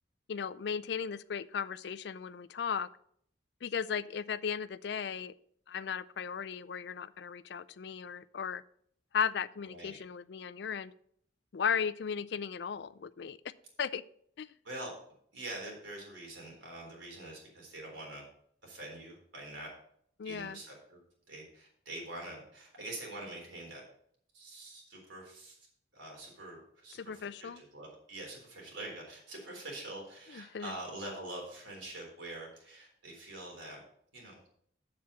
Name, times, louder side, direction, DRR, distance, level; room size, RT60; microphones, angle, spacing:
voice 1, 0.3-2.9 3.6-5.3 5.7-8.6 9.1-10.9 11.5-13.4 13.8-14.0 14.4-14.5 20.2-20.6 26.9-27.6 30.3-30.8, left 7 dB, 60° left, 17 dB, 0.4 m, -36 dB
voice 2, 15.3-18.3 18.6-19.7 20.3-21.0 21.3-23.8 24.3-25.6 25.9-33.8 34.1-34.3, right 2 dB, 90° right, -1 dB, 3.8 m, -45 dB
7.6 x 7.3 x 5.5 m, 0.66 s
head